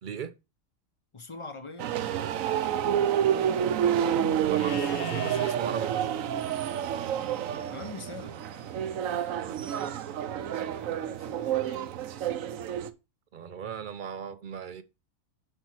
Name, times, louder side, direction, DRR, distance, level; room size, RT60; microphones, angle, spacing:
voice 1, 0.0-0.4 4.4-6.3 9.3-9.9 13.3-14.8, right 8 dB, 60° right, 0.5 m, -38 dB
voice 2, 1.1-1.9 7.7-8.4 10.6-11.9, left 3 dB, 30° left, 0.6 m, -43 dB
sound 1, 1.8-12.9, right 9 dB, 80° right, 1.1 m, -29 dB
Livestock farm animals working animals, 4.5-5.6 8.4-9.4, left 4 dB, 45° left, 1.2 m, -42 dB
7.9 x 5.5 x 4.7 m
omnidirectional pair, 1.4 m